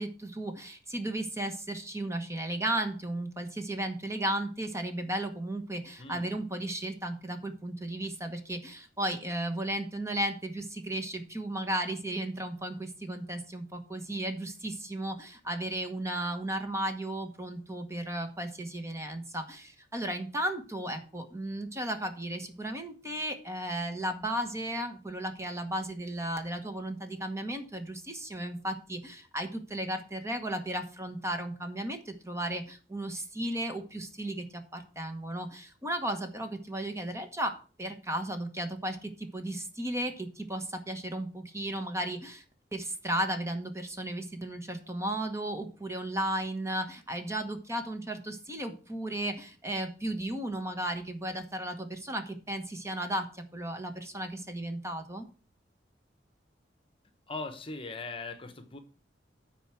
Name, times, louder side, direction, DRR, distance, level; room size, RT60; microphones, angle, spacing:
voice 1, 0.0-42.4 42.7-55.3, right 1 dB, 15° right, 6 dB, 1.2 m, -35 dB
voice 2, 6.0-6.3 57.3-58.8, left 3 dB, 30° left, 8 dB, 1.0 m, -40 dB
9.1 x 4.5 x 7.5 m, 0.38 s
head